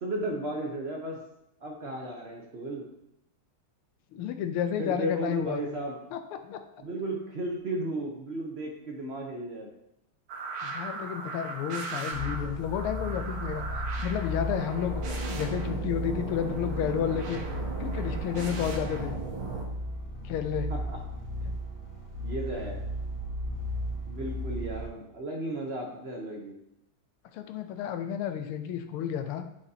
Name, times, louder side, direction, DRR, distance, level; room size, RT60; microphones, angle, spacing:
voice 1, 0.0-1.2 1.6-2.8 4.8-6.0 6.8-9.7 20.7-21.0 22.2-22.8 24.1-26.6, right 1 dB, 60° right, -1 dB, 0.6 m, -34 dB
voice 2, 4.1-5.6 6.1-6.6 10.6-17.4 17.8-19.2 20.2-20.7 21.5-21.6 27.3-29.4, left 9 dB, 90° left, 8 dB, 1.6 m, -31 dB
sound 1, 10.3-19.7, right 4 dB, 75° right, 1.8 m, -38 dB
sound 2, 12.1-24.9, equal, 40° left, 1.9 m, -35 dB
8.7 x 5.0 x 2.8 m, 0.80 s
omnidirectional pair, 2.3 m